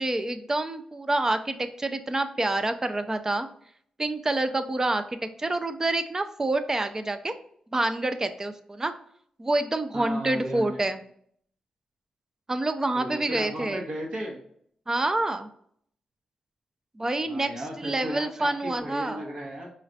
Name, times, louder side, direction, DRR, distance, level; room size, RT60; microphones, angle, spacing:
voice 1, 0.0-3.5 4.0-7.3 7.7-8.9 9.4-11.0 12.5-13.8 14.9-15.5 17.0-17.5 17.8-19.2, right 2 dB, 25° right, 9 dB, 0.4 m, -27 dB
voice 2, 9.9-10.8 12.9-14.4 17.2-19.7, equal, 70° right, -3 dB, 1.5 m, -35 dB
4.9 x 3.1 x 2.7 m, 0.64 s
cardioid pair, 85°, 2 cm